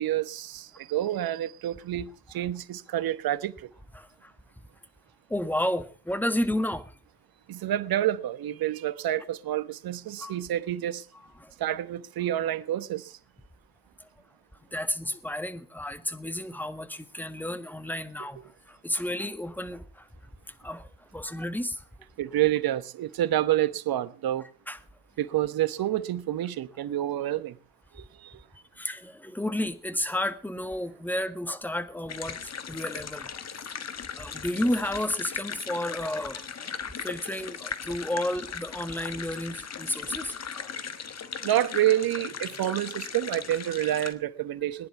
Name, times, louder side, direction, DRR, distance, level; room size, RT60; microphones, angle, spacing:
voice 1, 0.0-3.7 7.5-11.1 11.6-13.2 22.2-24.5 25.2-27.6 27.9-28.4 41.4-44.9, right 13 dB, 50° right, 1.2 m, -28 dB
voice 2, 3.9-4.3 5.3-6.9 10.2-10.4 11.4-11.5 14.0-14.1 14.7-20.1 20.6-21.8 24.7-24.8 28.7-33.5 33.8-36.7 37.0-40.7, left 1 dB, 5° left, 1.7 m, -32 dB
sound 1, 32.1-44.1, left 7 dB, 35° left, 1.5 m, -38 dB
19.5 x 10.5 x 5.9 m
hypercardioid pair, 60°, 46 cm